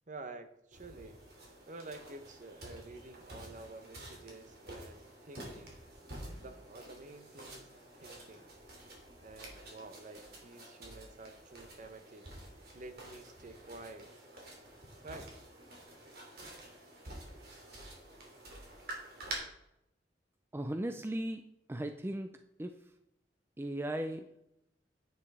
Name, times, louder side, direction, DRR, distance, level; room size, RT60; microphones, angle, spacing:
voice 1, 0.1-1.2 1.7-5.8 6.4-8.5 9.2-12.3 12.7-14.2 15.0-15.4, right 2 dB, 45° right, 9 dB, 0.9 m, -50 dB
sound 1, 0.7-19.3, right 1 dB, 60° right, 2.9 m, -49 dB
voice 2, 20.5-21.4 21.7-22.3 22.6-22.7 23.6-24.2, right 1 dB, 15° right, 7 dB, 0.4 m, -36 dB
10.0 x 8.8 x 3.6 m, 0.84 s
head